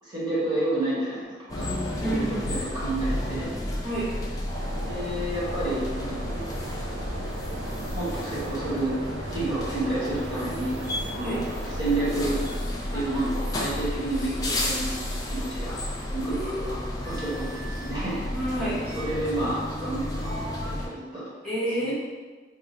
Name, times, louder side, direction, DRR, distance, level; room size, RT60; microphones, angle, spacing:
voice 1, 0.0-3.5 3.8-3.9 4.9-6.5 7.9-8.9 9.3-10.8 11.1-11.5 11.8-12.4 12.9-15.8 16.1-18.2 18.9-21.3 21.8-21.9, right 2 dB, 25° right, -9 dB, 1.1 m, -30 dB
sound 1, 1.5-20.9, left 1 dB, 20° left, 0.4 m, -32 dB
voice 2, 2.0-2.5 3.8-4.1 11.2-11.4 16.3-16.9 18.3-18.8 21.4-21.9, right 1 dB, 5° left, -12 dB, 0.8 m, -29 dB
sound 2, 4.5-12.6, right 2 dB, 85° right, 0.5 m, -38 dB
2.5 x 2.4 x 4.1 m, 1.4 s
head